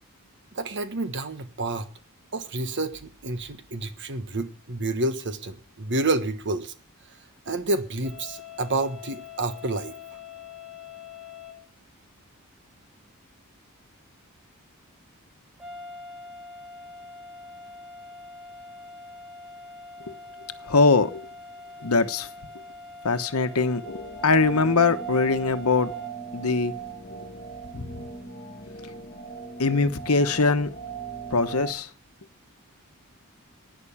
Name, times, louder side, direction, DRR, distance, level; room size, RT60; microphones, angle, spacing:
voice 1, 0.5-1.9 2.3-6.7 7.5-9.9, right 2 dB, 55° right, 1.4 m, -29 dB
sound 1, 8.0-11.6 15.6-26.1, left 4 dB, ahead, 1.8 m, -44 dB
voice 2, 20.6-21.3 21.8-22.3 23.0-25.9 26.3-26.7 27.7-28.0 29.6-30.7 31.3-31.9, left 4 dB, 75° left, 1.1 m, -22 dB
sound 2, 23.8-31.7, right 6 dB, 35° left, 1.6 m, -38 dB
11.5 x 9.8 x 7.1 m
head